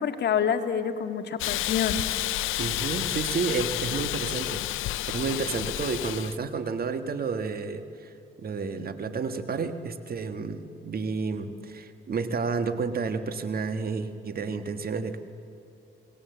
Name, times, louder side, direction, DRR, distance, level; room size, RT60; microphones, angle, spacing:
voice 1, 0.0-2.0, left 7 dB, 60° left, 6 dB, 2.0 m, -27 dB
Hiss, 1.4-6.4, left 16 dB, 85° left, 0.6 m, -30 dB
voice 2, 2.6-15.2, right 5 dB, 50° right, 9 dB, 1.7 m, -31 dB
29.0 x 19.0 x 8.1 m, 2.8 s
cardioid pair, 90°, 20 cm